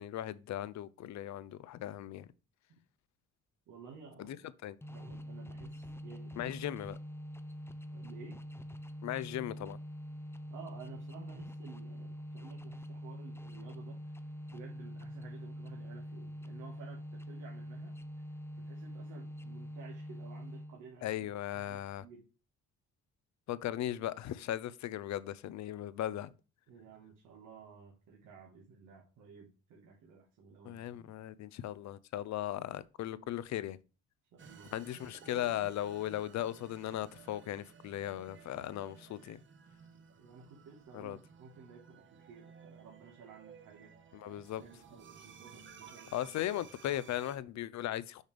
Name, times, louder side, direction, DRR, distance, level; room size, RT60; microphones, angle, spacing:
voice 1, 0.0-2.3 4.2-4.4 4.6-4.8 6.4-7.0 9.0-9.8 21.0-22.0 23.5-26.3 30.6-33.8 34.7-39.4 40.9-41.2 44.1-44.6 46.1-48.2, left 12 dB, 65° left, 0.6 m, -37 dB
voice 2, 3.7-4.5 4.9-6.5 7.9-8.4 10.5-14.2 14.5-21.3 21.5-22.3 26.7-31.1 34.3-34.7 40.1-43.9 44.6-46.2, right 5 dB, 90° right, 1.5 m, -54 dB
sound 1, 4.8-20.9, equal, 10° left, 0.5 m, -45 dB
sound 2, 34.4-47.4, right 6 dB, 40° right, 1.0 m, -56 dB
6.4 x 5.1 x 3.4 m
cardioid pair, 90°, 30 cm